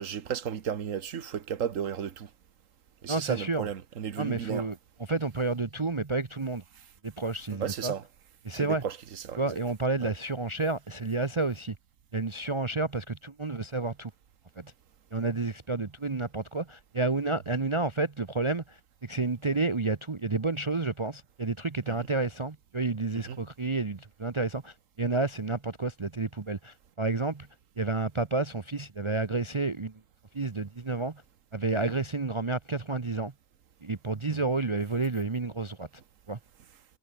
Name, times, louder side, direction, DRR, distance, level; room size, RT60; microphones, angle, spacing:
voice 1, 0.0-2.3 3.0-4.7 7.6-8.0 8.5-9.4 10.0-10.1 21.9-22.1 23.1-23.4, right 8 dB, 70° right, 1.5 m, -34 dB
voice 2, 3.1-3.7 4.2-4.8 5.1-6.6 7.0-7.9 8.4-8.8 9.4-11.8 12.1-14.1 14.6-14.7 15.1-27.5 27.8-29.9 30.3-31.2 31.5-33.3 33.8-35.9 36.3-36.4, right 3 dB, 25° right, 0.7 m, -30 dB
omnidirectional pair, 1.4 m